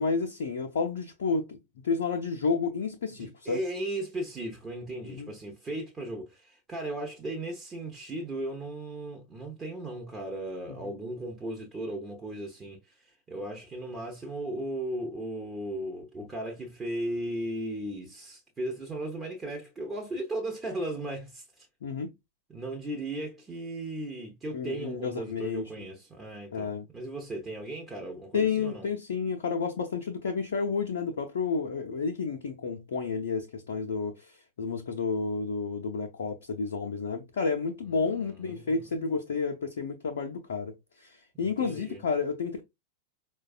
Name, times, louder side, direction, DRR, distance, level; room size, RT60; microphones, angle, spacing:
voice 1, 0.0-1.6 1.8-3.6 5.0-5.3 10.7-10.9 21.8-22.1 24.5-25.7 26.5-26.9 28.3-34.3 34.6-40.7 41.0-42.6, left 4 dB, 65° left, 0.5 m, -31 dB
voice 2, 3.1-21.7 22.5-28.9 38.0-38.8 41.3-42.0, right 1 dB, 20° right, 0.7 m, -36 dB
4.6 x 2.2 x 2.4 m
figure-of-eight pair, 90°, 0 cm